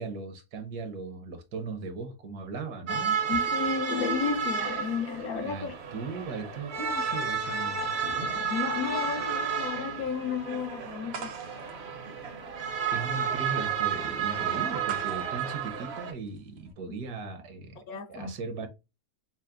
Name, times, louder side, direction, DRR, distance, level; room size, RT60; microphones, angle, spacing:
voice 1, 0.0-3.4 5.3-8.2 12.9-17.8 18.1-18.7, right 4 dB, 70° right, 1.4 m, -38 dB
sound 1, 2.9-16.1, right 6 dB, 50° right, 0.8 m, -31 dB
voice 2, 3.3-5.8 8.4-11.3 17.9-18.3, left 6 dB, 70° left, 1.1 m, -33 dB
sound 2, 11.1-16.7, right 6 dB, 90° right, 1.4 m, -46 dB
5.6 x 2.0 x 2.4 m
omnidirectional pair, 1.7 m